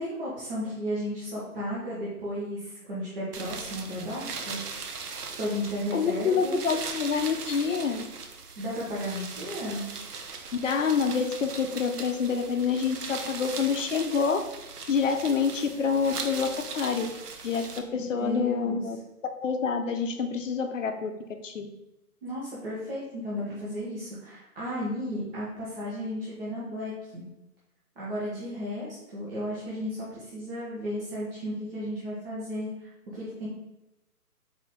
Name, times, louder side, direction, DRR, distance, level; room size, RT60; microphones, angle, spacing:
voice 1, 0.0-4.6 5.4-6.6 8.6-9.9 17.9-18.8 22.2-27.2 28.0-33.5, equal, 40° right, -7 dB, 1.0 m, -34 dB
sound 1, 3.3-17.8, right 5 dB, 80° right, 0.8 m, -39 dB
voice 2, 5.9-8.0 10.5-14.4 14.9-17.1 17.4-17.7 17.9-19.0 19.4-21.1 21.4-21.7, left 5 dB, 55° left, 6 dB, 0.6 m, -27 dB
4.0 x 3.1 x 3.7 m, 0.96 s
hypercardioid pair, 155°, 46 cm